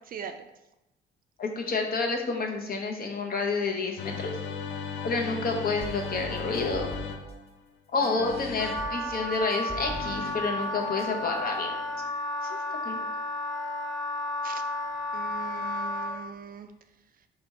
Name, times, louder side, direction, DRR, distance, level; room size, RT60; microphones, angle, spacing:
voice 1, 0.1-0.4 14.4-14.6 15.1-16.7, right 7 dB, 45° right, 8 dB, 0.4 m, -40 dB
voice 2, 1.4-4.3 5.0-6.9 7.9-11.8 12.4-12.6 12.8-13.0, left 3 dB, 50° left, 2 dB, 0.8 m, -29 dB
sound 1, 4.0-7.6 8.0-8.9 9.8-12.1, left 6 dB, 75° left, 0.5 m, -38 dB
sound 2, 5.8-7.3 8.0-10.3 10.6-11.6, equal, 30° left, 1.2 m, -43 dB
Wind instrument woodwind instrument, 8.6-16.1, left 1 dB, ahead, 0.9 m, -32 dB
4.2 x 2.4 x 4.1 m, 0.93 s
cardioid pair, 90°, 20 cm